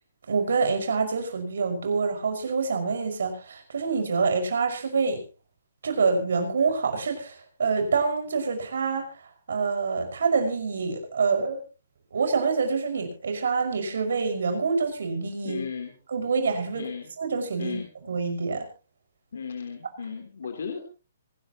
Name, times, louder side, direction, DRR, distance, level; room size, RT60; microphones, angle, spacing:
voice 1, 0.3-5.2 5.8-9.1 9.5-11.6 12.1-15.6 16.1-16.9 17.2-17.8 18.1-18.7, right 4 dB, 80° right, 6 dB, 5.7 m, -26 dB
voice 2, 15.4-15.9 16.7-17.1 17.6-17.9 19.3-20.8, left 6 dB, 80° left, 3 dB, 3.3 m, -35 dB
25.5 x 12.0 x 3.0 m, 0.33 s
hypercardioid pair, 160°, 0 cm